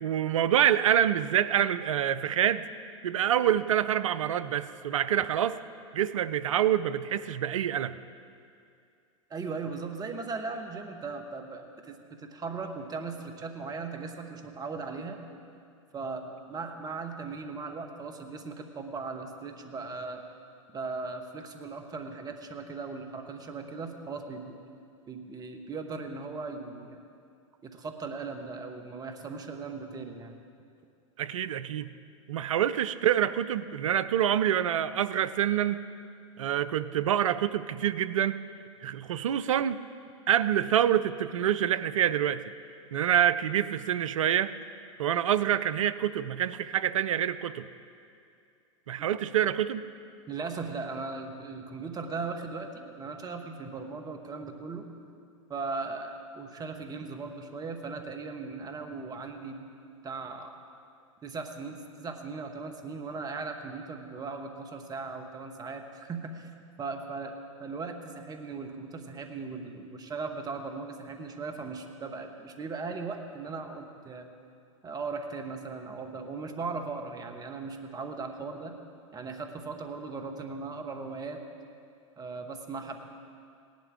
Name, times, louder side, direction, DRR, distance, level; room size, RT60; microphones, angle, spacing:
voice 1, 0.0-2.6 3.0-5.6 5.9-7.9 31.2-31.9 32.3-35.9 36.4-38.4 38.8-39.8 40.3-42.4 42.9-44.5 45.0-47.7 48.9-49.8, right 10 dB, 75° right, 14 dB, 0.5 m, -26 dB
voice 2, 9.3-15.2 15.9-20.2 20.7-24.6 25.1-27.0 27.6-30.3 50.3-54.9 55.5-59.7 60.0-60.6 61.2-66.5 66.8-74.3 74.8-78.8 79.1-81.4 82.2-83.0, right 4 dB, 25° right, 5 dB, 1.2 m, -38 dB
18.0 x 11.5 x 3.6 m, 2.4 s
hypercardioid pair, 95°, 17 cm